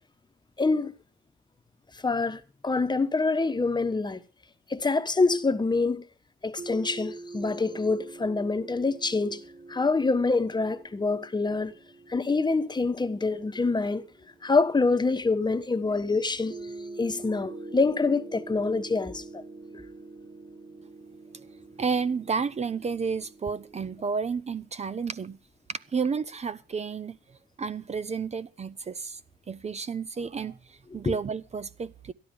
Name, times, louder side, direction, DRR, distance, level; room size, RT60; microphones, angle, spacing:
voice 1, 0.6-0.9 2.0-4.2 4.7-6.1 6.4-9.4 9.7-11.7 12.1-14.0 14.4-16.6 17.0-19.2 31.0-31.1, left 3 dB, 20° left, 1.1 m, -26 dB
sound 1, 6.6-15.3 16.5-24.1, right 2 dB, 60° right, 6.7 m, -45 dB
voice 2, 21.8-25.4 25.7-27.2 27.6-29.2 29.5-32.1, right 5 dB, 35° right, 0.8 m, -31 dB
12.5 x 12.0 x 5.3 m
cardioid pair, 90°, 20 cm